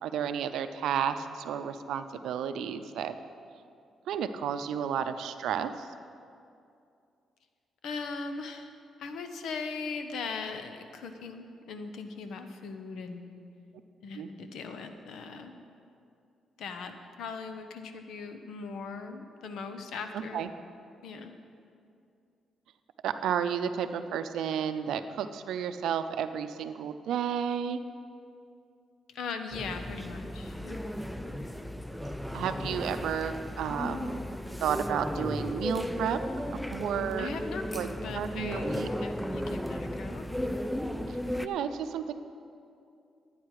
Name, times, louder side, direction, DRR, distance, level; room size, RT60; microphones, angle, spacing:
voice 1, 0.0-3.1 4.1-5.9 14.1-14.3 20.1-20.5 23.0-27.8 32.3-34.2 34.6-36.2 36.5-37.3 37.7-37.9 38.1-38.9 41.1-41.2 41.4-42.1, right 8 dB, 80° right, 9 dB, 0.5 m, -32 dB
voice 2, 7.8-8.7 9.0-13.4 14.0-15.6 16.6-20.5 21.0-21.3 29.1-30.8 37.2-38.6 39.0-40.3, left 4 dB, 75° left, 7 dB, 0.9 m, -39 dB
sound 1, 29.5-41.5, equal, 5° left, 0.5 m, -35 dB
12.0 x 9.2 x 4.8 m, 2.5 s
cardioid pair, 85°, 0 cm